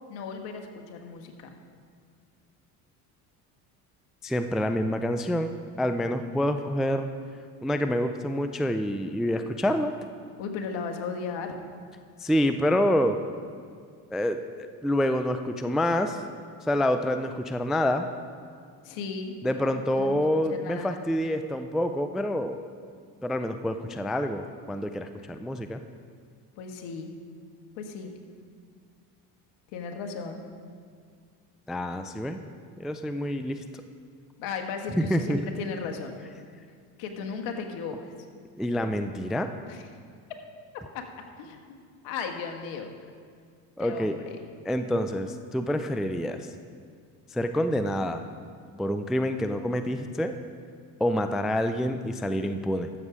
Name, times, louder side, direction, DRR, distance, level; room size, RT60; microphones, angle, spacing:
voice 1, 0.1-1.5 10.4-11.6 18.8-19.4 19.8-21.0 26.6-27.1 27.7-28.2 29.7-30.4 34.4-36.2 37.0-38.1 39.7-39.8 40.9-41.1 41.4-41.8 42.0-42.9 43.8-44.4, left 5 dB, 70° left, 3 dB, 1.5 m, -36 dB
voice 2, 4.2-5.5 5.8-7.1 7.6-9.9 12.2-13.2 14.1-16.2 16.7-18.1 19.4-22.6 23.2-24.4 24.7-25.8 31.7-32.4 32.8-33.6 34.9-35.4 38.6-39.5 43.8-44.2 44.7-46.5 47.3-48.2 48.8-50.3 51.0-52.9, left 1 dB, ahead, 8 dB, 0.3 m, -27 dB
13.5 x 7.2 x 4.9 m, 2.1 s
hypercardioid pair, 75°, 47 cm